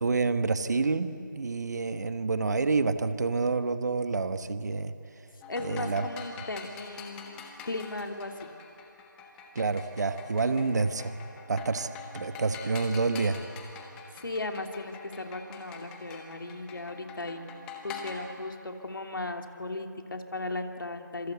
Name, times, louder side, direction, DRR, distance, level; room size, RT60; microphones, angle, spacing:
voice 1, 0.0-4.9 5.6-6.0 9.5-11.1 11.5-11.9 12.1-13.4, right 4 dB, 55° right, 10 dB, 1.3 m, -28 dB
sound 1, 5.4-18.1, left 5 dB, 5° left, 1.3 m, -45 dB
voice 2, 5.5-8.5 14.1-17.5 17.8-21.3, left 2 dB, 85° left, 4 dB, 2.7 m, -37 dB
26.5 x 26.5 x 8.2 m, 2.8 s
figure-of-eight pair, 170°, 11 cm